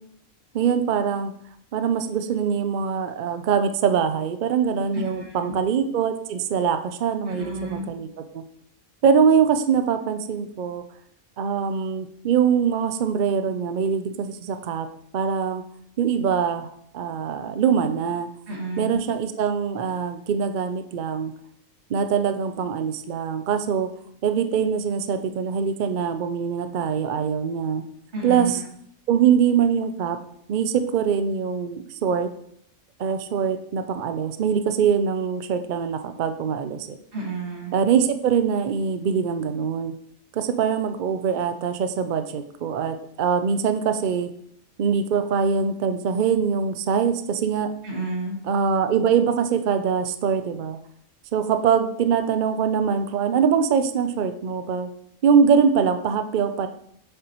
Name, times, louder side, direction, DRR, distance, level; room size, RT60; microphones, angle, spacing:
voice 1, 0.5-1.3 1.7-8.1 8.3-8.4 9.0-10.8 11.4-14.9 15.1-15.6 16.0-16.7 16.9-18.3 18.8-21.3 21.9-23.9 24.2-27.8 28.2-28.6 29.1-30.2 30.5-32.3 33.0-37.0 37.7-39.9 40.3-44.3 44.8-47.7 48.5-50.8 51.3-54.9 55.2-56.7, right 7 dB, 75° right, 8 dB, 0.4 m, -23 dB
voice 2, 4.9-5.6 7.3-8.0 18.5-19.0 28.1-28.5 37.1-37.7 47.8-48.4, right 3 dB, 50° right, -3 dB, 2.3 m, -31 dB
7.7 x 6.7 x 3.0 m, 0.69 s
omnidirectional pair, 1.5 m